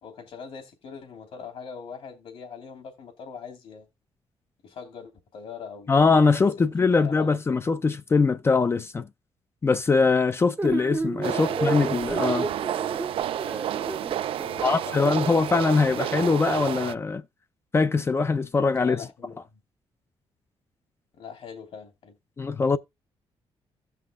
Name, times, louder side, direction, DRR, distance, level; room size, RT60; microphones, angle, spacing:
voice 1, 0.0-3.9 4.6-6.1 6.6-7.3 11.3-11.9 14.4-15.3 15.8-16.2 18.7-19.6 21.1-22.2, left 6 dB, 65° left, 3.1 m, -42 dB
voice 2, 5.9-9.1 9.6-12.5 14.6-17.2 17.7-19.0 22.4-22.8, left 4 dB, 25° left, 0.5 m, -22 dB
sound 1, 10.6-14.7, right 3 dB, 15° right, 0.6 m, -32 dB
sound 2, 11.2-16.9, right 11 dB, 65° right, 0.4 m, -30 dB
16.5 x 5.7 x 2.4 m
cardioid pair, 130°, 10 cm